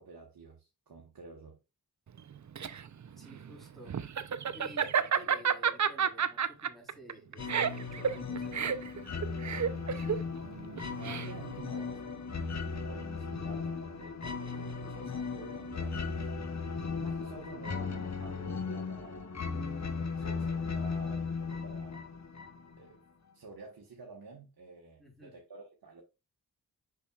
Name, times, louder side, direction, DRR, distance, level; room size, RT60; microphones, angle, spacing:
voice 1, 0.0-1.6 10.4-16.3 17.0-22.0 22.8-23.0 23.3-26.0, right 3 dB, 60° right, 1.5 m, -50 dB
Laughter, 2.2-11.6, right 7 dB, 45° right, 0.6 m, -31 dB
voice 2, 3.2-4.0 4.5-9.3 25.0-25.3, equal, ahead, 3.8 m, -53 dB
sound 1, 7.4-22.9, left 5 dB, 45° left, 1.1 m, -37 dB
6.7 x 6.0 x 2.4 m
cardioid pair, 45°, 39 cm